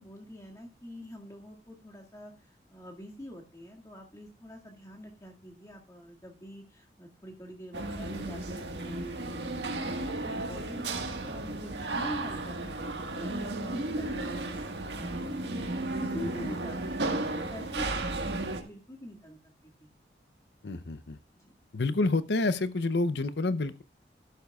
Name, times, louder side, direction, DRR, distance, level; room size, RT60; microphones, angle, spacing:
voice 1, 0.0-19.4 19.6-19.9 21.3-21.5, equal, 20° left, 0 dB, 2.0 m, -45 dB
sound 1, 7.7-18.6, right 2 dB, 80° right, 1.6 m, -34 dB
voice 2, 20.6-21.2 21.7-23.8, left 2 dB, 75° left, 15 dB, 0.7 m, -29 dB
12.5 x 11.5 x 2.4 m, 0.30 s
head